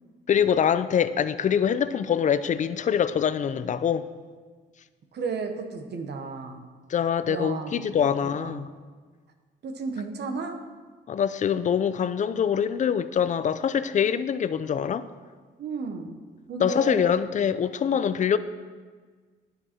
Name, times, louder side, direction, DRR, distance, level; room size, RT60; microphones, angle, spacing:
voice 1, 0.3-4.0 6.9-8.7 11.1-15.0 16.6-18.4, left 8 dB, 40° left, 14 dB, 0.5 m, -24 dB
voice 2, 5.1-6.7 7.3-8.7 9.6-10.6 15.6-16.2 16.5-17.2, right 4 dB, 55° right, 5 dB, 1.0 m, -34 dB
9.9 x 6.9 x 4.4 m, 1.5 s
cardioid pair, 90°, 20 cm